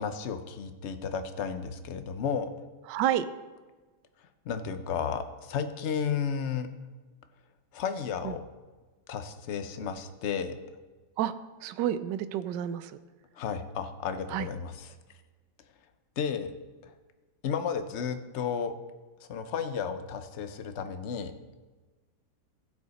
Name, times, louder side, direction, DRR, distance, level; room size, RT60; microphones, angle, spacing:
voice 1, 0.0-2.5 4.4-6.7 7.7-8.4 9.1-10.6 13.4-15.0 16.2-16.5 16.8-16.9 17.4-18.7 19.2-21.3, left 6 dB, 55° left, 8 dB, 0.8 m, -33 dB
voice 2, 2.9-3.2 8.2-8.3 11.2-11.3 11.6-13.0 14.3-14.5, right 11 dB, 75° right, 13 dB, 1.2 m, -29 dB
15.5 x 7.3 x 4.1 m, 1.3 s
omnidirectional pair, 2.0 m